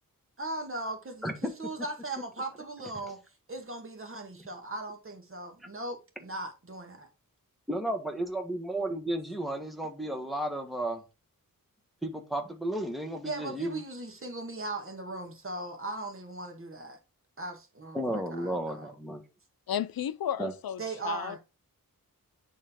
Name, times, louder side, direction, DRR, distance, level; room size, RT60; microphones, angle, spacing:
voice 1, 0.4-3.2 3.5-7.1 13.3-17.0 17.4-18.9 20.8-21.4, right 2 dB, 40° right, 1.8 m, -38 dB
voice 2, 7.7-11.0 12.0-13.8 17.9-19.2 20.4-20.5, right 1 dB, ahead, 1.5 m, -33 dB
voice 3, 19.7-21.4, left 9 dB, 85° left, 0.6 m, -33 dB
9.7 x 3.9 x 3.6 m
wide cardioid pair, 135°, 35 cm